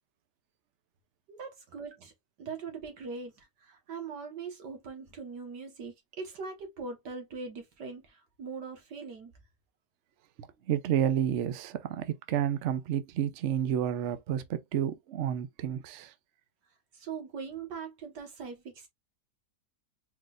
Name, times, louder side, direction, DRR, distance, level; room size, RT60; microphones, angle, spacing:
voice 1, 1.3-2.1 2.4-9.3 16.9-18.9, right 5 dB, 90° right, 2.1 m, -41 dB
voice 2, 10.4-16.1, right 10 dB, 60° right, 0.8 m, -30 dB
4.9 x 3.9 x 2.5 m
omnidirectional pair, 1.8 m